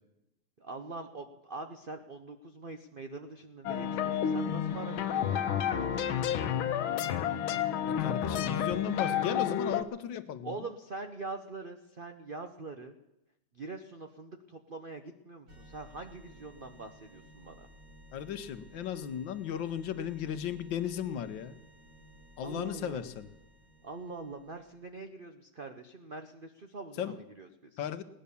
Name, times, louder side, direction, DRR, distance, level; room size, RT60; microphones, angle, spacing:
voice 1, 0.6-6.6 10.4-13.0 13.5-17.7 22.4-23.0 23.8-27.8, right 3 dB, 65° right, 6 dB, 0.5 m, -44 dB
sound 1, 3.7-9.8, left 9 dB, 90° left, 1.6 m, -30 dB
voice 2, 7.9-10.6 18.1-21.6 22.4-23.3 27.0-27.2 27.8-28.0, left 9 dB, 75° left, 11 dB, 1.5 m, -35 dB
sound 2, 15.5-24.9, equal, 45° right, 4.1 m, -56 dB
18.0 x 10.5 x 6.9 m, 0.91 s
omnidirectional pair, 2.2 m